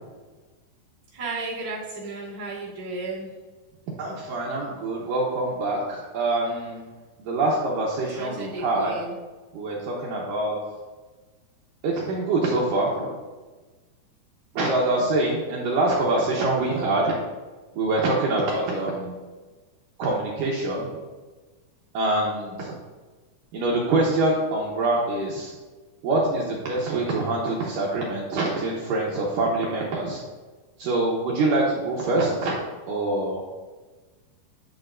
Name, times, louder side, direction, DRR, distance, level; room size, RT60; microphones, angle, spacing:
voice 1, 1.1-3.3 8.1-9.1, right 3 dB, 15° right, -11 dB, 2.0 m, -33 dB
voice 2, 4.0-6.8 7.2-9.0 9.5-10.6 11.8-13.2 14.5-17.2 17.7-19.3 20.0-21.0 21.9-22.8 23.5-25.5 26.0-30.2 30.8-32.6 32.9-33.4, right 2 dB, 70° right, -3 dB, 2.2 m, -25 dB
11.5 x 6.9 x 2.6 m, 1.3 s
omnidirectional pair, 4.6 m